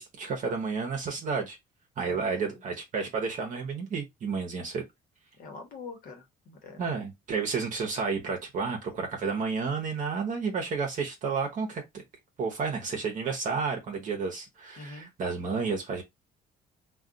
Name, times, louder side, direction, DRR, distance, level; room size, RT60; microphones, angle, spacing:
voice 1, 0.0-1.6 2.0-4.8 6.8-12.0 12.4-16.0, right 5 dB, 50° right, 0.8 m, -31 dB
voice 2, 2.0-2.6 5.4-6.8 8.6-8.9 14.8-15.1, left 4 dB, 60° left, 1.0 m, -45 dB
2.3 x 2.2 x 3.8 m
cardioid pair, 110°, 17 cm